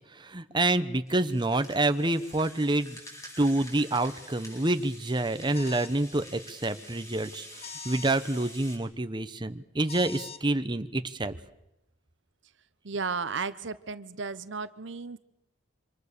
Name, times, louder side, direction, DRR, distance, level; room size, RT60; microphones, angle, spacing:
voice 1, 0.1-3.0 3.4-11.3, right 2 dB, 25° right, 10 dB, 1.0 m, -27 dB
Rattle (instrument), 1.1-8.8, left 1 dB, 15° left, 7.2 m, -48 dB
sound 1, 5.5-6.0 7.6-8.2 9.9-10.4, left 5 dB, 35° left, 1.3 m, -43 dB
voice 2, 12.8-15.2, right 4 dB, 70° right, 14 dB, 0.9 m, -34 dB
27.5 x 26.0 x 6.8 m, 0.87 s
head